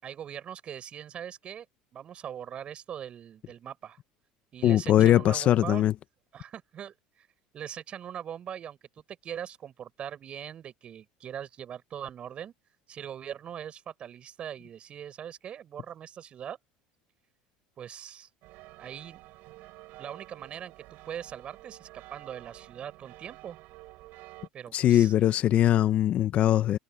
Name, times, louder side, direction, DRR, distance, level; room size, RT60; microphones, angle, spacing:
voice 1, 0.0-1.7 1.9-4.0 4.5-5.8 6.3-7.3 7.5-8.8 9.2-12.5 12.9-16.6 17.8-18.3 18.8-19.2 20.0-23.6 24.5-25.1, right 9 dB, 40° right, 6.7 m, -41 dB
voice 2, 4.6-5.9 24.7-26.8, left 12 dB, 45° left, 0.8 m, -21 dB
sound 1, 18.4-24.5, right 21 dB, 65° right, 7.7 m, -50 dB
supercardioid pair, 105°, 3 cm